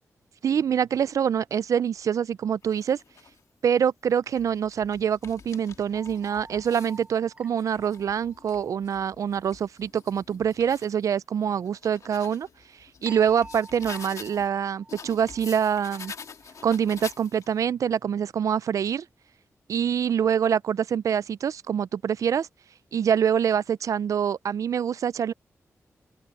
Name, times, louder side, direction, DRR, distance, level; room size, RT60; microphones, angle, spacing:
voice 1, 0.4-3.0 3.6-12.5 13.0-16.1 16.6-19.1 19.7-22.5 22.9-25.3, right 8 dB, 80° right, 0.4 m, -25 dB
sound 1, 2.6-3.4 4.1-7.0 7.5-10.9 11.4-14.5 14.9-17.6, left 6 dB, 75° left, 1.7 m, -46 dB
sound 2, 5.9-8.8 13.1-16.6, right 2 dB, 20° right, 7.8 m, -49 dB
open air
cardioid pair, 80°, 6 cm